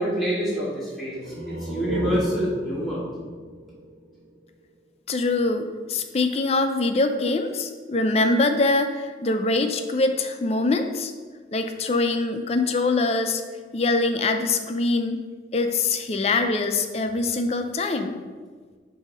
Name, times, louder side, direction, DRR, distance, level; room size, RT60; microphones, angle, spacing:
voice 1, 0.0-3.0, equal, ahead, -7 dB, 1.6 m, -27 dB
sound 1, 1.2-4.7, right 1 dB, 90° right, 1.0 m, -33 dB
voice 2, 5.1-11.1 11.5-13.4 13.7-15.2 15.5-18.2, left 3 dB, 35° left, 7 dB, 0.4 m, -23 dB
7.9 x 2.8 x 5.2 m, 1.5 s
head